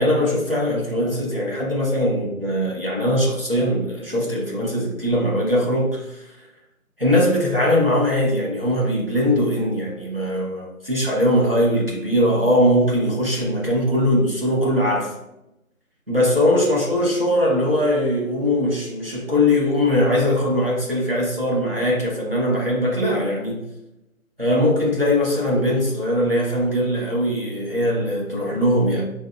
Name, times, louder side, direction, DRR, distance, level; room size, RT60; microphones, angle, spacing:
voice 1, 0.0-6.3 7.0-15.1 16.1-23.6 24.4-29.0, left 1 dB, 40° right, -4 dB, 1.0 m, -21 dB
7.0 x 2.7 x 2.4 m, 0.90 s
figure-of-eight pair, 175°, 44 cm